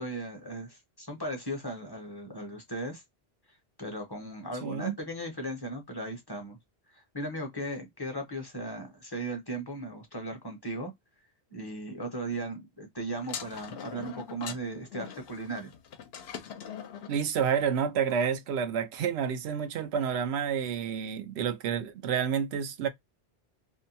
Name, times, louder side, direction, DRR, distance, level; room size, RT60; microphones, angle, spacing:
voice 1, 0.0-3.0 3.8-6.6 6.9-10.9 11.5-15.7, right 1 dB, 25° left, 0.7 m, -37 dB
voice 2, 4.6-5.0 17.1-22.9, right 7 dB, 80° right, 0.8 m, -29 dB
sound 1, 13.2-17.2, left 8 dB, 75° left, 0.8 m, -42 dB
2.6 x 2.2 x 2.6 m
omnidirectional pair, 1.1 m